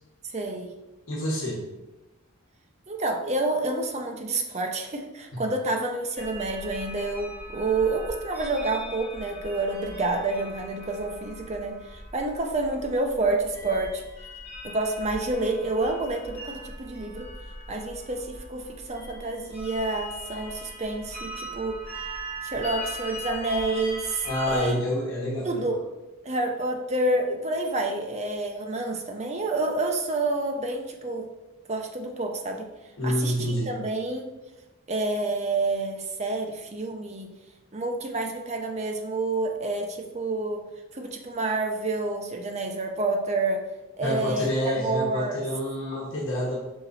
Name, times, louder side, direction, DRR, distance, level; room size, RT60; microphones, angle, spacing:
voice 1, 0.3-0.7 2.9-14.0 14.6-17.3 17.7-21.8 22.4-24.7 25.4-25.8 26.2-31.3 31.7-32.7 33.0-34.3 34.9-37.3 37.7-40.6 40.9-43.7 44.0-45.4, right 2 dB, 30° right, 3 dB, 0.6 m, -28 dB
voice 2, 1.1-1.6 24.2-25.6 33.0-33.7 44.0-46.6, equal, 60° left, -4 dB, 1.3 m, -27 dB
sound 1, 6.2-24.7, equal, 10° left, 1.9 m, -40 dB
5.8 x 4.0 x 4.0 m, 1.0 s
head